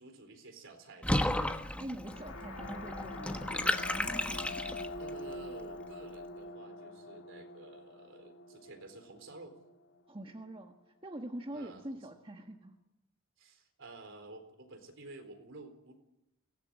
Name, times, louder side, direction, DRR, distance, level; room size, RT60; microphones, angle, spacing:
voice 1, 0.0-1.4 4.5-9.6 11.5-12.0 13.4-15.9, right 2 dB, 60° right, 6 dB, 4.0 m, -52 dB
Water / Bathtub (filling or washing), 1.0-5.1, left 1 dB, 5° left, 1.2 m, -33 dB
voice 2, 1.8-3.6 10.1-10.7 11.0-12.7, right 1 dB, 25° right, 3 dB, 1.5 m, -44 dB
sound 1, 2.1-9.9, left 2 dB, 65° left, 2.5 m, -45 dB
23.0 x 18.5 x 8.8 m, 0.92 s
head